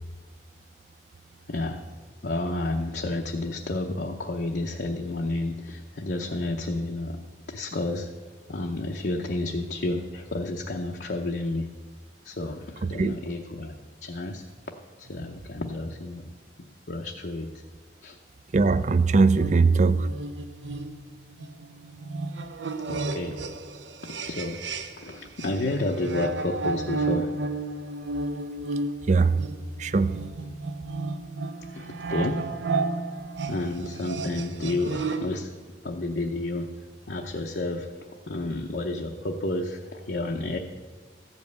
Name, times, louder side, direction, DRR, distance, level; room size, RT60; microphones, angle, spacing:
voice 1, 1.5-1.8 2.2-7.2 7.5-8.1 8.5-11.7 12.2-13.7 14.0-14.4 15.0-16.3 16.9-17.5 18.0-18.2 22.9-23.4 24.2-24.6 25.0-27.3 31.7-32.5 33.5-35.5 35.8-36.7 37.1-37.9 38.3-40.6, left 2 dB, 60° left, 1 dB, 0.7 m, -30 dB
voice 2, 18.5-20.1 29.1-29.4 29.8-30.1, right 4 dB, 40° right, 15 dB, 0.4 m, -20 dB
sound 1, 19.4-25.1 25.4-35.4, right 3 dB, 75° right, 0.7 m, -33 dB
14.0 x 5.4 x 8.0 m, 1.4 s
head